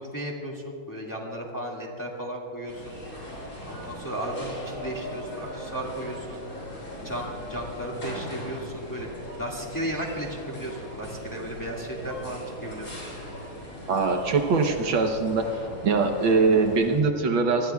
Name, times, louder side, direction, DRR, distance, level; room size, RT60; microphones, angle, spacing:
voice 1, 0.0-3.0 3.7-6.5 7.0-9.1 9.4-13.0, right 1 dB, 10° left, -2 dB, 1.7 m, -34 dB
sound 1, 2.7-17.0, equal, 40° left, 5.3 m, -39 dB
voice 2, 13.9-15.5 15.8-17.7, right 4 dB, 65° right, 4 dB, 1.7 m, -22 dB
27.0 x 20.0 x 2.4 m, 2.6 s
omnidirectional pair, 2.4 m